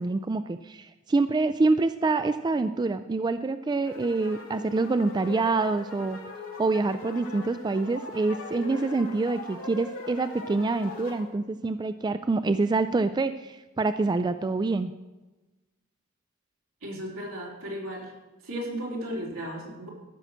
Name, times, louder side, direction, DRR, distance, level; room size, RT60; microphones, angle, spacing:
voice 1, 0.0-6.2 6.6-14.9, right 3 dB, 20° right, 11 dB, 0.3 m, -26 dB
sound 1, 3.8-11.2, left 3 dB, 80° left, 2.7 m, -41 dB
voice 2, 16.8-18.1 18.4-19.9, equal, 80° right, -2 dB, 3.3 m, -35 dB
13.0 x 6.6 x 6.1 m, 1.1 s
head